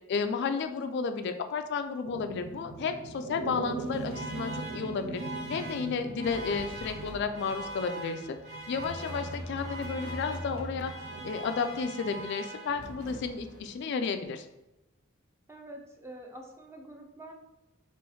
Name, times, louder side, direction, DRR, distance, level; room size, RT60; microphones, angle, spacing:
voice 1, 0.1-5.2 5.5-8.2 8.7-10.9 11.2-14.5, left 5 dB, 55° left, 8 dB, 0.3 m, -32 dB
sound 1, 2.0-12.3, right 3 dB, 70° right, 0.5 m, -42 dB
Alarm, 3.7-13.1, right 2 dB, 35° right, 1.2 m, -43 dB
sound 2, 6.2-7.8 8.6-11.3 12.6-13.8, equal, 90° right, 1.0 m, -43 dB
voice 2, 15.5-17.3, right 1 dB, 15° right, 2 dB, 0.5 m, -46 dB
3.1 x 3.0 x 4.6 m, 0.94 s
head